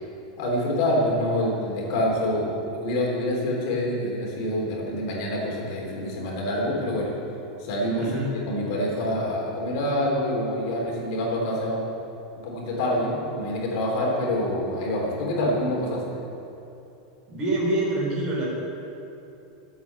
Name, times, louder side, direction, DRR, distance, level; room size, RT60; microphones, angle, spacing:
voice 1, 0.4-7.2 7.6-8.2 8.5-11.8 12.4-16.2, left 1 dB, 45° left, -2 dB, 3.6 m, -26 dB
voice 2, 8.0-8.3 17.3-18.5, right 2 dB, 25° right, -5 dB, 3.8 m, -26 dB
14.5 x 8.4 x 7.5 m, 2.8 s
supercardioid pair, 180°, 3 cm